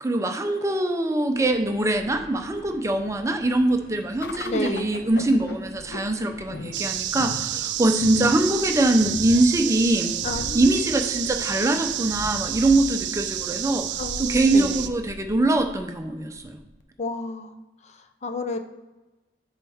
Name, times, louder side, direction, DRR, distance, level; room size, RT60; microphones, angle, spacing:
voice 1, 0.0-10.1 10.5-13.9 14.2-16.6, right 2 dB, 15° right, 5 dB, 0.6 m, -23 dB
Subway metro underground, 1.2-15.6, left 1 dB, 60° left, 1.0 m, -45 dB
sound 1, 4.2-16.8, left 2 dB, 85° left, 0.6 m, -41 dB
voice 2, 4.4-4.9 10.2-10.8 14.0-14.9 17.0-17.6 17.8-18.6, left 2 dB, 40° left, 7 dB, 0.5 m, -31 dB
sound 2, 6.7-14.9, right 12 dB, 90° right, 0.4 m, -30 dB
7.2 x 5.5 x 3.5 m, 1.1 s
head